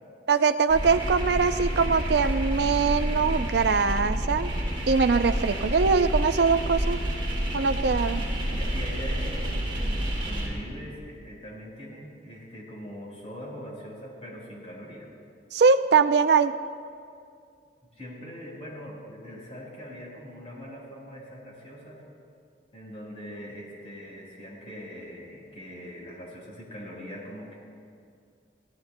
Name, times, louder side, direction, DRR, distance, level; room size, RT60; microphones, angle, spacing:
voice 1, 0.3-4.5 4.9-7.0 7.5-8.2 15.5-16.5, right 5 dB, 65° right, 10 dB, 0.4 m, -22 dB
sound 1, 0.7-10.5, equal, 30° right, 4.3 m, -29 dB
voice 2, 8.2-15.1 17.9-22.0 22.7-27.6, equal, 35° left, -3 dB, 4.3 m, -42 dB
27.0 x 17.0 x 2.2 m, 2.3 s
head